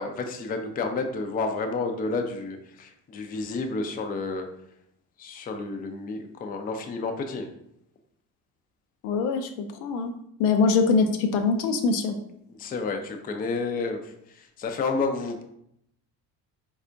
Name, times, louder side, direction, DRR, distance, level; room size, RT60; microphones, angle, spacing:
voice 1, 0.0-4.5 5.2-7.5 12.6-15.4, left 3 dB, 20° left, 5 dB, 0.4 m, -30 dB
voice 2, 9.0-10.1 10.4-12.2, left 4 dB, 80° left, 6 dB, 0.6 m, -23 dB
4.1 x 2.3 x 2.5 m, 0.75 s
hypercardioid pair, 60°, 48 cm